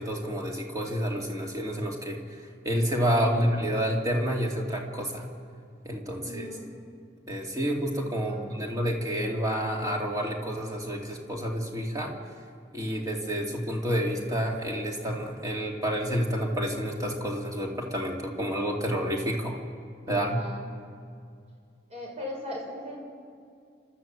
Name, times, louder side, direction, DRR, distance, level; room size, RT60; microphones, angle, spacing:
voice 1, 0.0-2.2 2.6-5.3 5.8-6.5 7.3-12.1 12.7-19.6 20.1-20.4, equal, 20° right, 0 dB, 2.5 m, -29 dB
voice 2, 3.1-3.5 6.2-6.7 8.0-8.7 20.1-20.6 21.9-23.0, left 1 dB, 35° right, -1 dB, 5.6 m, -39 dB
29.0 x 13.0 x 7.6 m, 2.3 s
head